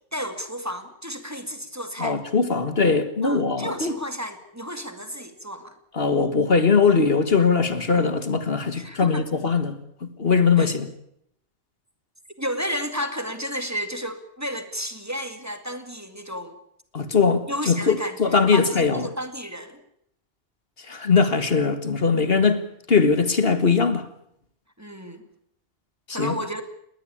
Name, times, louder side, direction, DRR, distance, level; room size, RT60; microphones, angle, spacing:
voice 1, 0.1-2.2 3.2-5.8 8.8-9.3 10.6-10.7 12.4-16.5 17.5-19.8 24.8-25.2 26.1-26.6, equal, 15° right, 2.2 m, -32 dB
voice 2, 2.0-3.9 6.0-9.8 10.0-10.9 16.9-19.1 20.9-22.6 22.9-24.0 26.1-26.3, left 5 dB, 65° left, 1.9 m, -21 dB
20.0 x 19.0 x 8.7 m
omnidirectional pair, 1.1 m